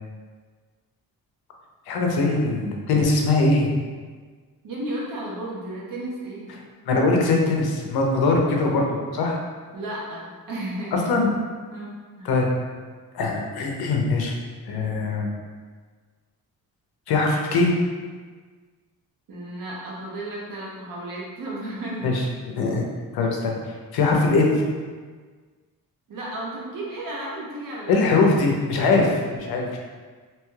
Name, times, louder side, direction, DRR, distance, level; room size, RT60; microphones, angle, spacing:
voice 1, 1.9-3.7 6.9-9.4 10.9-11.3 12.2-12.5 13.1-14.4 14.7-15.3 17.1-17.7 22.0-22.2 22.6-22.8 23.1-24.6 27.9-29.8, left 3 dB, 80° left, 0 dB, 0.6 m, -21 dB
voice 2, 4.6-6.5 9.7-11.1 11.7-12.3 19.3-22.2 26.1-28.1, right 1 dB, 60° right, -4 dB, 0.9 m, -33 dB
2.9 x 2.3 x 3.1 m, 1.5 s
cardioid pair, 125°, 37 cm